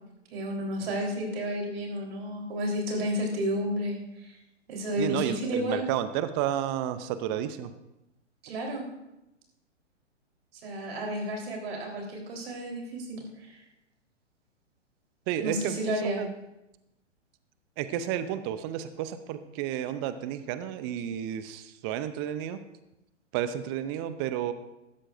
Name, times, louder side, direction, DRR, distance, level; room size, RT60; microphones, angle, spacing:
voice 1, 0.3-4.4 4.7-5.9 8.4-8.9 10.6-13.6 15.4-16.2, equal, 55° right, -1 dB, 3.8 m, -32 dB
voice 2, 5.0-7.7 15.3-15.8 16.2-16.3 17.8-22.6 23.3-24.5, right 10 dB, 20° right, 12 dB, 0.5 m, -31 dB
16.0 x 13.0 x 2.5 m, 0.93 s
figure-of-eight pair, 115°, 37 cm